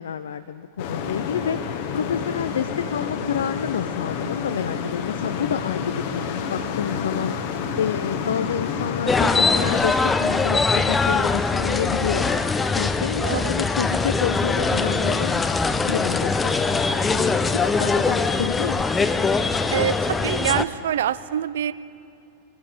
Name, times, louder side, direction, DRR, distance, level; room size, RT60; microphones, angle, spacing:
voice 1, 0.0-1.6 1.9-7.4 7.8-12.4 12.7-15.4 15.8-19.1, left 8 dB, 65° left, 11 dB, 0.4 m, -29 dB
sound 1, 0.8-9.8, left 6 dB, 45° left, 1.0 m, -29 dB
sound 2, 9.1-20.6, left 4 dB, 15° left, 0.6 m, -22 dB
voice 2, 13.2-13.5 19.7-21.7, right 10 dB, 60° right, 16 dB, 0.4 m, -25 dB
22.0 x 11.5 x 5.3 m, 2.7 s
figure-of-eight pair, 90°, 0 cm